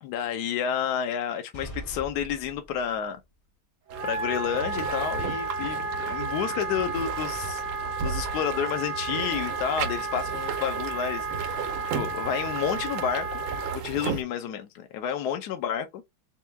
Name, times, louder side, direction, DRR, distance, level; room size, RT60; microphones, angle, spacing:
voice 1, 0.0-3.2 4.0-7.6 8.0-13.4 13.7-16.0, left 8 dB, 70° left, 1.0 m, -30 dB
sound 1, 1.5-3.2, equal, 35° left, 0.6 m, -42 dB
Wind instrument woodwind instrument, 3.9-13.8, right 3 dB, 55° right, 1.0 m, -33 dB
sound 2, 3.9-14.2, right 6 dB, 90° right, 1.5 m, -35 dB
4.4 x 2.3 x 3.3 m
omnidirectional pair, 2.1 m